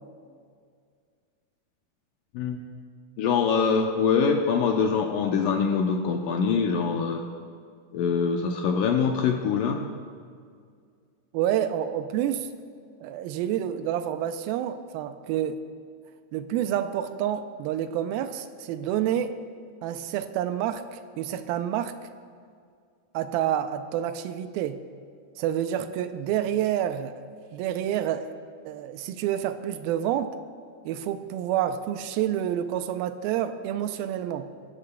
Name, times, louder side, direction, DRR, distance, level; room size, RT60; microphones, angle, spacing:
voice 1, 3.2-7.2 7.9-9.8, left 6 dB, 85° left, 3 dB, 1.9 m, -24 dB
voice 2, 11.3-12.5 13.0-15.6 16.3-19.3 19.8-21.9 23.1-24.8 25.4-27.1 27.5-28.3 28.7-30.4 30.9-34.5, right 10 dB, 80° right, 9 dB, 2.2 m, -28 dB
20.0 x 14.5 x 2.3 m, 2.1 s
omnidirectional pair, 4.6 m